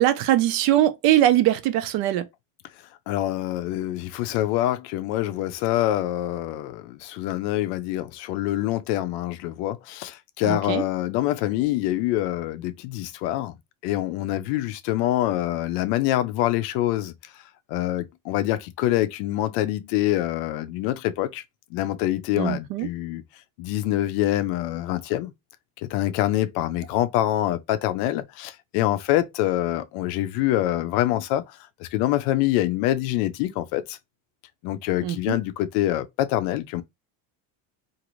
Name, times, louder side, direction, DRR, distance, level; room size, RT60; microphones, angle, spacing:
voice 1, 0.0-2.3 10.5-10.8 22.3-22.9 35.0-35.4, right 13 dB, 55° right, 0.5 m, -21 dB
voice 2, 3.1-13.6 13.8-17.1 17.7-21.4 21.7-23.2 23.6-25.3 25.8-34.0 34.6-36.8, left 14 dB, 60° left, 0.5 m, -25 dB
2.6 x 2.5 x 3.0 m
cardioid pair, 165°, 44 cm